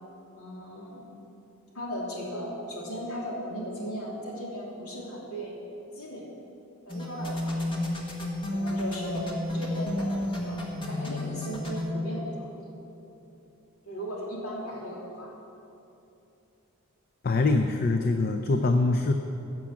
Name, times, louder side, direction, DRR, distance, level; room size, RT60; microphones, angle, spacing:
voice 1, 0.4-1.0 1.7-5.6 5.9-6.2 6.9-7.7 8.5-9.3 9.5-10.6 10.9-12.7 13.8-15.3, equal, 75° left, -4 dB, 3.1 m, -37 dB
sound 1, 6.9-11.9, left 1 dB, 25° left, 1.5 m, -31 dB
voice 2, 17.2-19.1, left 3 dB, 45° left, 6 dB, 0.5 m, -24 dB
16.0 x 6.1 x 7.2 m, 2.9 s
head